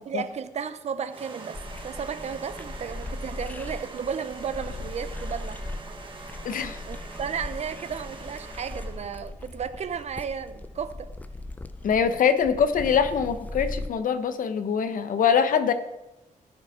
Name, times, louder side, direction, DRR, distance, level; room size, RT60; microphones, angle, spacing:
voice 1, 0.0-5.6 6.9-11.2, right 7 dB, 55° right, 0.6 m, -34 dB
sound 1, 1.1-9.2, right 3 dB, 35° right, 1.2 m, -43 dB
sound 2, 1.5-13.9, left 2 dB, 10° left, 0.4 m, -39 dB
voice 2, 6.4-6.8 11.8-15.7, left 7 dB, 75° left, 0.9 m, -23 dB
16.5 x 5.7 x 4.3 m
wide cardioid pair, 170°, 14 cm